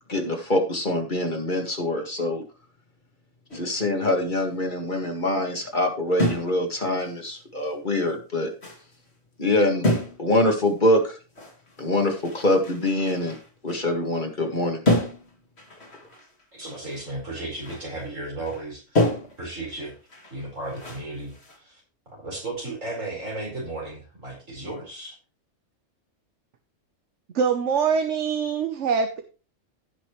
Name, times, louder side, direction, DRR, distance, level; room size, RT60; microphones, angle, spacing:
voice 1, 0.1-2.4 3.5-8.5 9.4-11.2 11.8-13.4 13.6-14.8, left 1 dB, 40° left, 3 dB, 2.0 m, -24 dB
sound 1, 3.5-3.9 6.2-6.7 7.0-7.1 8.0-8.1 8.6-9.0 9.8-10.4 10.7-10.8 11.4-14.5 14.9-17.1 17.4-18.1 18.4-18.7 19.0-21.6, left 1 dB, 55° left, 2.7 m, -29 dB
voice 2, 16.5-19.1 19.4-19.9 20.3-21.8 22.1-25.2, right 2 dB, 85° right, -1 dB, 5.1 m, -35 dB
voice 3, 27.3-29.2, right 6 dB, 70° right, 7 dB, 1.2 m, -23 dB
16.5 x 5.9 x 3.1 m, 0.35 s
omnidirectional pair, 1.3 m